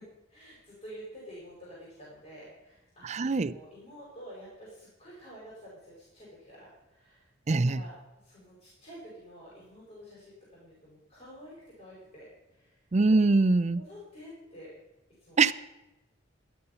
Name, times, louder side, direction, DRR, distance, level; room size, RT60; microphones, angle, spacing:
voice 1, 0.3-3.1 3.4-7.3 7.5-7.9 8.2-12.8 13.7-14.7 15.2-15.4, equal, 35° left, -7 dB, 4.8 m, -49 dB
voice 2, 3.0-3.6 7.5-7.8 12.9-13.8 15.4-15.5, right 3 dB, 35° right, 17 dB, 0.5 m, -23 dB
13.0 x 11.5 x 5.6 m, 1.0 s
head